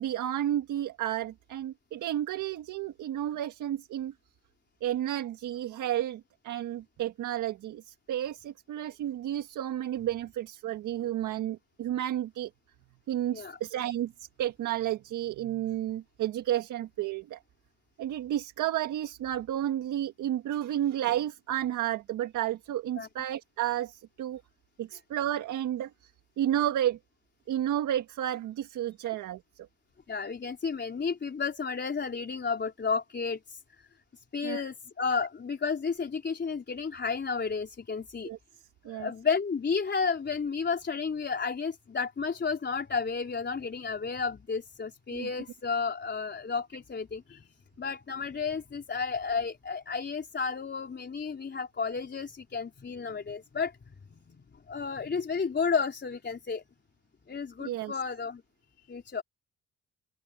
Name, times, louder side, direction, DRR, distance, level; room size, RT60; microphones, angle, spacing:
voice 1, 0.0-4.1 4.8-12.5 13.1-17.4 18.0-24.4 24.8-26.1 26.4-27.0 27.5-29.7 34.4-34.6 38.2-38.4 38.8-39.1 45.1-45.3 57.6-57.9, right 12 dB, 80° right, 1.6 m, -32 dB
voice 2, 30.1-33.9 34.3-38.3 38.9-54.4 54.7-56.6 57.3-58.4 58.9-59.2, left 5 dB, 35° left, 4.0 m, -32 dB
open air
cardioid pair, 90°, 30 cm